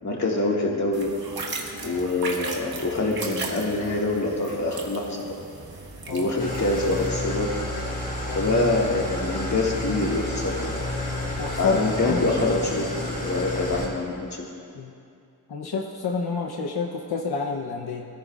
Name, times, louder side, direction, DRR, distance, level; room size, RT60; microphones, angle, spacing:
voice 1, 0.0-1.1 1.8-5.3 6.1-7.5 8.3-10.7 11.6-14.5, left 2 dB, 50° left, -2 dB, 2.1 m, -25 dB
sound 1, 0.9-7.1, right 3 dB, 75° right, 1.4 m, -36 dB
Engine starting / Idling, 6.4-13.9, left 1 dB, 20° left, 2.9 m, -30 dB
voice 2, 11.4-12.3 14.7-14.9 15.5-18.1, left 4 dB, 90° left, 1 dB, 0.9 m, -29 dB
21.0 x 14.0 x 2.5 m, 2.4 s
wide cardioid pair, 130°, 37 cm